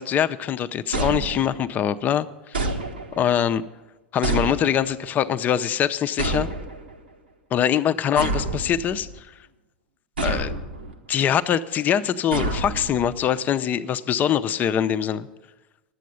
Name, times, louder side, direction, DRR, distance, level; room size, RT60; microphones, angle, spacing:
voice 1, 0.0-2.6 3.1-3.6 4.1-6.5 7.5-9.1 10.2-10.5 11.1-15.3, left 9 dB, 35° left, 12 dB, 0.6 m, -23 dB
sound 1, 0.9-1.8 2.5-3.4 4.2-5.1 6.2-7.0 8.2-9.2 10.2-10.9 12.3-13.2, right 2 dB, 85° right, 1.3 m, -28 dB
11.5 x 8.3 x 9.3 m, 1.1 s
figure-of-eight pair, 85°, 5 cm